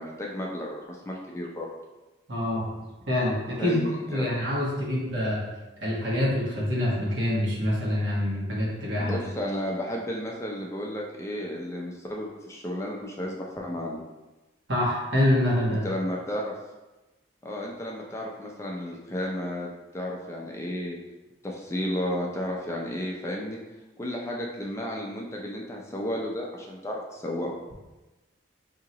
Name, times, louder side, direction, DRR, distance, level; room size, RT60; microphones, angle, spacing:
voice 1, 0.0-1.7 3.6-4.3 9.0-14.0 15.8-16.5 17.4-21.0 21.4-23.6 24.0-27.5, left 1 dB, 15° left, -2 dB, 0.4 m, -33 dB
voice 2, 2.3-2.7 3.1-3.8 4.1-5.4 5.8-9.1 14.7-15.8, left 1 dB, 80° right, -5 dB, 1.4 m, -26 dB
4.8 x 2.8 x 2.9 m, 1.1 s
head